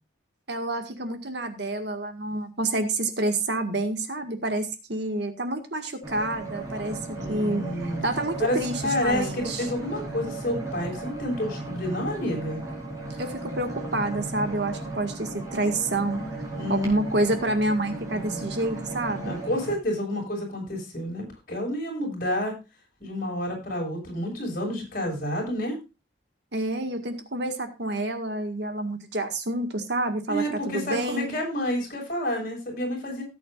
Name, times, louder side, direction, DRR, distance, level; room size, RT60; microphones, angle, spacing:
voice 1, 0.5-9.7 13.2-16.4 16.7-19.3 26.5-31.4, right 2 dB, 60° right, 6 dB, 2.0 m, -28 dB
sound 1, 6.0-19.8, right 2 dB, 20° right, 4.7 m, -36 dB
voice 2, 7.1-8.0 8.4-12.6 16.5-16.9 18.0-18.4 19.2-22.5 23.0-25.7 30.3-33.2, left 1 dB, 45° left, 0 dB, 6.5 m, -29 dB
17.5 x 8.5 x 2.6 m, 0.28 s
head